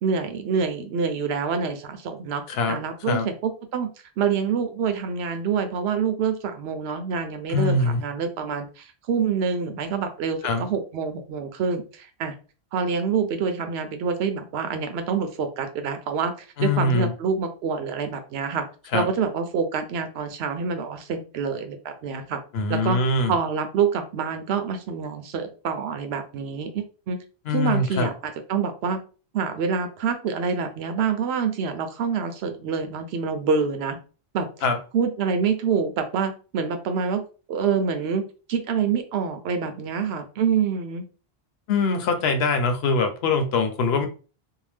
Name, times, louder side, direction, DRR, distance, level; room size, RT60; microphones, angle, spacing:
voice 1, 0.0-3.9 4.2-12.3 12.7-16.3 16.6-18.7 18.9-22.4 22.7-23.0 23.3-27.2 27.5-29.0 29.3-34.0 34.3-34.5 34.9-37.2 37.5-41.0, right 6 dB, 90° right, 8 dB, 0.8 m, -26 dB
voice 2, 2.5-2.8 3.1-3.3 7.5-8.0 10.4-10.7 16.6-17.1 18.9-19.1 22.5-23.3 27.5-28.1 34.6-34.8 41.7-44.1, left 3 dB, 80° left, 7 dB, 0.9 m, -23 dB
2.7 x 2.0 x 3.3 m, 0.36 s
omnidirectional pair, 1.0 m